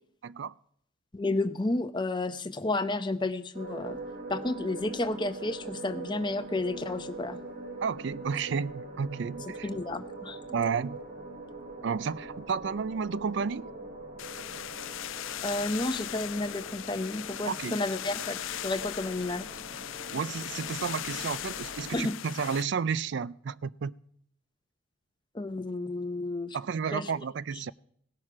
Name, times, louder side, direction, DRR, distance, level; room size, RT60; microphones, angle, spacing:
voice 1, 0.2-0.5 7.8-9.7 10.5-11.0 11.8-13.7 17.5-17.8 20.1-24.0 26.5-27.7, right 6 dB, 60° right, 0.4 m, -32 dB
voice 2, 1.1-4.0 4.3-7.4 9.6-10.4 15.4-19.5 21.9-22.1 25.3-26.6 26.9-27.1, left 2 dB, 20° left, 0.7 m, -31 dB
sound 1, 3.5-22.0, right 2 dB, 40° right, 1.8 m, -43 dB
sound 2, 14.2-22.6, left 12 dB, 75° left, 0.4 m, -38 dB
17.0 x 6.5 x 5.9 m
head